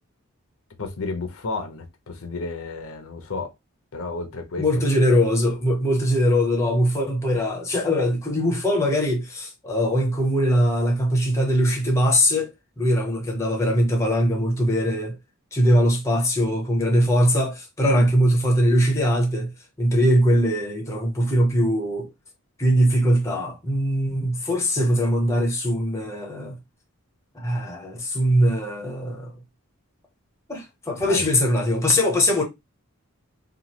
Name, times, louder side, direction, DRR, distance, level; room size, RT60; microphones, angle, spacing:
voice 1, 0.8-3.5 3.9-4.9 17.8-18.1 31.0-31.2, left 3 dB, 70° left, 0.6 m, -32 dB
voice 2, 4.6-15.2 15.5-19.5 19.8-22.1 22.6-26.6 27.3-29.3 30.5-32.4, equal, 15° left, 0.6 m, -21 dB
2.9 x 2.3 x 2.8 m
head